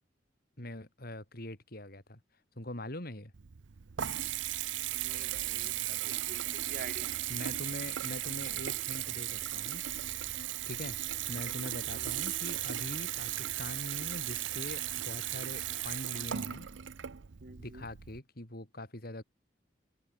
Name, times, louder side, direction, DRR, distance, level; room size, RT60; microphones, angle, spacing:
voice 1, 0.6-2.2 2.6-3.3 7.3-9.8 10.7-11.0 11.3-16.7 17.6-19.2, left 1 dB, 55° left, 4.0 m, -43 dB
Water tap faucet / Bathtub (filling or washing) / Trickle dribble, 3.3-18.2, right 13 dB, 80° right, 0.7 m, -36 dB
voice 2, 4.9-7.3 11.9-12.3 17.4-17.9, right 3 dB, 50° right, 2.2 m, -48 dB
head